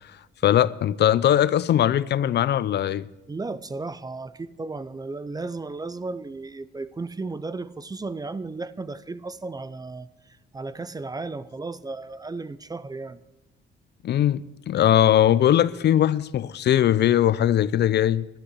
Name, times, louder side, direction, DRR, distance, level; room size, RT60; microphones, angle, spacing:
voice 1, 0.4-3.1 14.0-18.3, left 11 dB, 60° left, 0.5 m, -20 dB
voice 2, 3.3-10.1 10.5-13.2, right 3 dB, 20° right, 0.5 m, -34 dB
12.5 x 11.5 x 6.4 m
cardioid pair, 90°, 20 cm